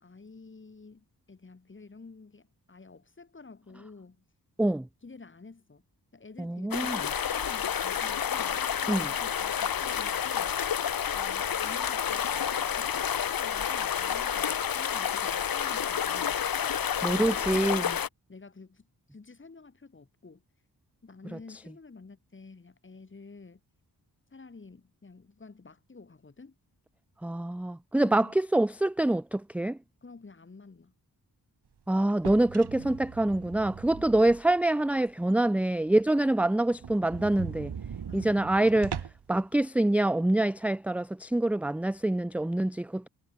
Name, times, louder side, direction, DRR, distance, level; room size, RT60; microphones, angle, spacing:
voice 1, 0.0-4.2 5.0-5.8 6.1-8.7 9.2-10.6 11.1-12.3 12.8-16.4 18.3-20.4 21.0-23.6 24.3-26.5 28.0-28.4 30.0-30.9 34.0-34.3 38.1-38.4, left 4 dB, 30° left, 4.3 m, -50 dB
voice 2, 6.4-7.0 8.9-9.1 17.0-18.0 21.3-21.4 27.2-29.8 31.9-37.7 38.1-39.0 39.3-43.1, right 1 dB, 5° right, 0.4 m, -26 dB
sound 1, 6.7-18.1, left 8 dB, 60° left, 1.2 m, -29 dB
sound 2, 32.1-34.6 35.1-35.2 35.6-35.7 35.9-36.0 36.3-36.4 36.7-39.4, right 7 dB, 80° right, 5.2 m, -40 dB
wide cardioid pair, 170°, 39 cm